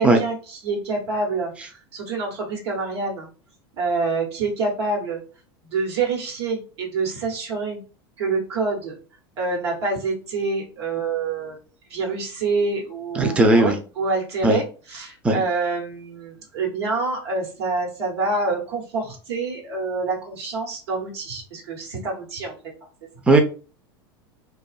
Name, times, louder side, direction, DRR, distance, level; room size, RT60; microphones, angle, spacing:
voice 1, 0.0-3.3 3.8-5.2 5.7-7.8 8.2-9.0 9.4-11.6 11.9-14.6 14.9-22.7 23.0-23.1, right 3 dB, 80° right, 0 dB, 1.1 m, -27 dB
voice 2, 13.1-13.8 14.4-14.6 15.2-15.4 23.3-23.4, right 2 dB, 10° right, 4 dB, 0.4 m, -16 dB
2.5 x 2.2 x 2.3 m, 0.35 s
hypercardioid pair, 90°, 14 cm